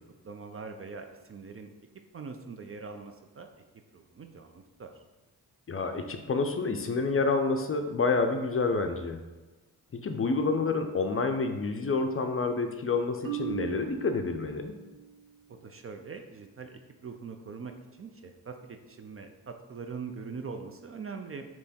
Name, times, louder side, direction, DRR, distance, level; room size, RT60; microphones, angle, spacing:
voice 1, 0.2-1.7 2.1-3.5 3.9-4.9 15.5-21.4, right 5 dB, 35° right, 5 dB, 0.4 m, -42 dB
voice 2, 5.7-9.2 10.0-14.7, left 4 dB, 35° left, 6 dB, 0.5 m, -28 dB
Marimba xylophone, 13.2-15.3, right 9 dB, 85° right, 0.7 m, -38 dB
3.4 x 3.0 x 4.2 m, 1.2 s
supercardioid pair, 50°, 41 cm